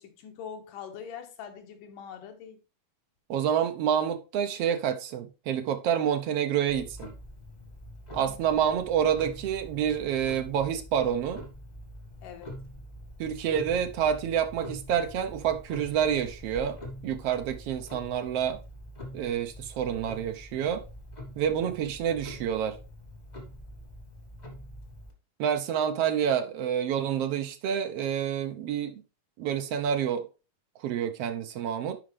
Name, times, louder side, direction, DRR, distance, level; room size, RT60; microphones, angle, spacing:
voice 1, 0.0-2.6 8.2-8.4 12.2-12.6, left 7 dB, 90° left, 2.8 m, -43 dB
voice 2, 3.3-7.1 8.1-11.4 13.2-16.8 17.0-18.6 19.1-20.8 21.4-22.8 25.4-29.0 29.4-30.3 30.8-32.0, right 9 dB, 70° right, 1.5 m, -28 dB
Clock, 6.7-25.1, equal, 30° left, 0.7 m, -45 dB
11.5 x 4.9 x 3.2 m
omnidirectional pair, 3.7 m